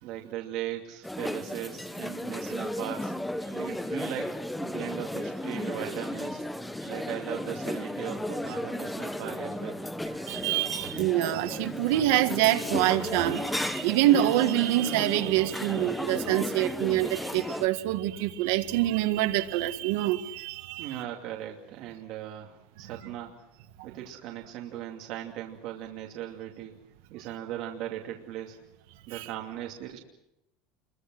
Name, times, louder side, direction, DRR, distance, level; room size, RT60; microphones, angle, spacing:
voice 1, 0.0-3.1 3.5-6.4 6.8-9.8 20.8-23.3 23.8-26.7 27.1-28.6 29.1-30.0, right 12 dB, 45° right, 0 dB, 2.5 m, -38 dB
sound 1, 1.0-17.7, left 1 dB, 5° left, 0.8 m, -34 dB
voice 2, 10.2-21.0 29.1-29.3, right 14 dB, 65° right, 8 dB, 1.8 m, -26 dB
28.0 x 22.5 x 6.2 m, 0.85 s
cardioid pair, 175°, 0 cm